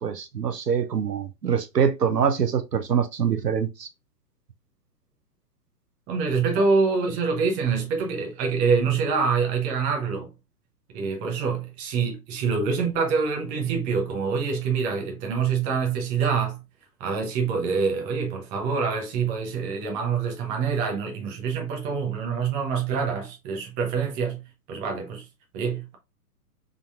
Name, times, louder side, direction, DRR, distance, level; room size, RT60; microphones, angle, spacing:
voice 1, 0.0-3.9, right 7 dB, 80° right, 0.8 m, -24 dB
voice 2, 6.1-10.3 10.9-16.6 17.0-24.4 24.7-25.2 25.5-26.0, right 5 dB, 15° right, 0.7 m, -25 dB
4.0 x 3.7 x 2.4 m
figure-of-eight pair, 120°, 48 cm